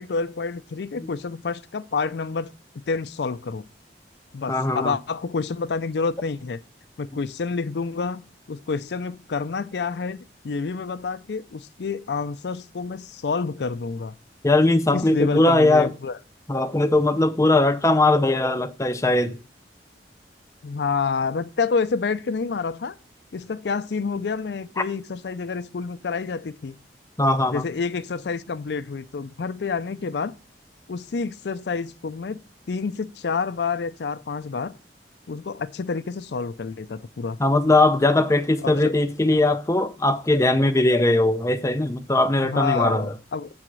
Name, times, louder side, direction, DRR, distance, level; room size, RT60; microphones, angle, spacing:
voice 1, 0.0-3.7 4.3-6.6 7.0-8.2 8.5-14.2 14.9-16.2 20.6-22.9 23.3-26.7 27.5-30.3 30.9-32.4 32.7-34.7 35.3-37.4 38.6-38.9 42.4-43.5, left 4 dB, 70° left, 0.5 m, -28 dB
voice 2, 4.5-5.0 14.4-15.9 16.5-19.4 27.2-27.7 37.4-43.1, left 2 dB, 15° left, 0.5 m, -20 dB
7.7 x 4.1 x 6.1 m
head